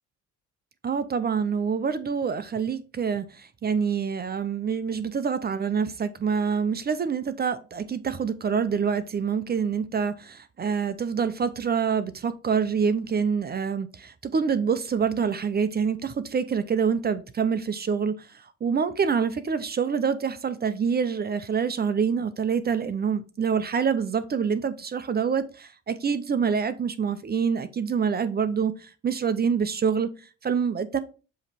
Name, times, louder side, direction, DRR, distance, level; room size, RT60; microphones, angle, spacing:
voice 1, 0.8-31.0, right 6 dB, 35° right, 0.6 m, -26 dB
7.2 x 3.1 x 4.2 m
cardioid pair, 95°, 29 cm